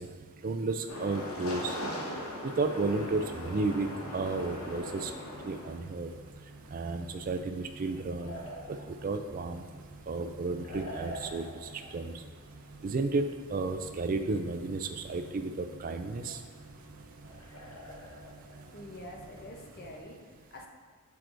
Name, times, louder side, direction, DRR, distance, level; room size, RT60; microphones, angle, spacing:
voice 1, 0.4-1.8 2.4-3.9 4.1-5.1 5.4-6.1 6.7-8.4 9.0-9.6 10.1-12.1 12.8-13.2 13.5-16.4, right 3 dB, 40° right, 8 dB, 0.3 m, -32 dB
sound 1, 0.9-5.8 6.7-19.9, equal, 80° left, 1.1 m, -43 dB
sound 2, 2.7-20.0, right 2 dB, 80° right, 0.7 m, -52 dB
voice 2, 18.7-20.7, left 1 dB, 45° left, 0 dB, 0.7 m, -46 dB
7.8 x 4.7 x 2.6 m, 1.5 s
head